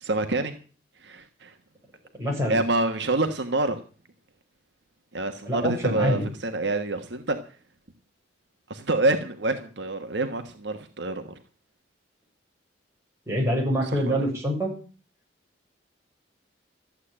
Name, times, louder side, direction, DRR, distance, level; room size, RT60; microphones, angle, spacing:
voice 1, 0.0-0.5 1.0-1.5 2.5-3.8 5.1-7.4 8.7-11.4 13.8-14.1, right 2 dB, 65° right, 6 dB, 1.4 m, -27 dB
voice 2, 2.2-2.6 5.5-6.2 13.3-14.7, equal, 15° right, -2 dB, 7.0 m, -25 dB
14.0 x 8.5 x 8.8 m, 0.39 s
head